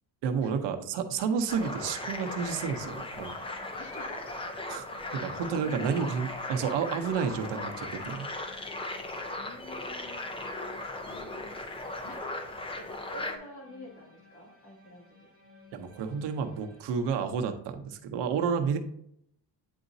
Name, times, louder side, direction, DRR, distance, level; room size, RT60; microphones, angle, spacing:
voice 1, 0.2-3.3 4.7-4.8 5.1-8.3 15.7-18.8, right 6 dB, 85° right, 7 dB, 0.8 m, -30 dB
sound 1, 1.5-13.4, left 2 dB, 15° left, 0.5 m, -38 dB
sound 2, 1.8-17.2, left 2 dB, 45° left, 2.1 m, -58 dB
voice 2, 3.8-4.7 5.5-6.0 9.3-10.3 11.1-11.6 12.0-15.3, left 1 dB, 75° left, -1 dB, 2.1 m, -48 dB
9.2 x 4.0 x 2.7 m, 0.71 s
cardioid pair, 160°, 41 cm